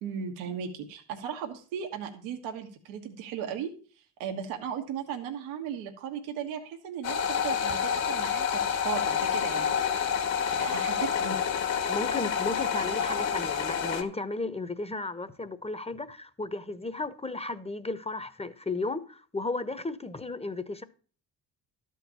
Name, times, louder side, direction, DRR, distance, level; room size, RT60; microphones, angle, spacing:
voice 1, 0.0-9.7 10.6-11.4, right 8 dB, 80° right, 1.5 m, -37 dB
sound 1, 7.0-14.0, left 7 dB, 75° left, 1.8 m, -28 dB
voice 2, 11.9-20.8, left 3 dB, 15° left, 1.0 m, -34 dB
12.5 x 4.7 x 6.9 m
hypercardioid pair, 55°, 46 cm